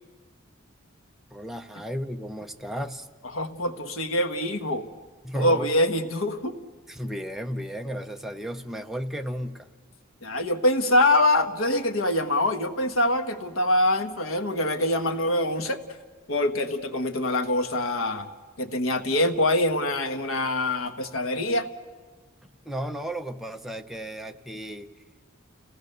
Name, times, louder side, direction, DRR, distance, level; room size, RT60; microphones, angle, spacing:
voice 1, 1.3-3.1 5.2-5.7 6.9-9.7 22.6-24.9, equal, ahead, 5 dB, 0.7 m, -34 dB
voice 2, 3.3-4.9 5.3-6.6 10.2-15.8 16.3-18.3 18.6-21.7, left 1 dB, 80° left, 8 dB, 1.3 m, -24 dB
30.0 x 17.0 x 6.7 m, 1.4 s
head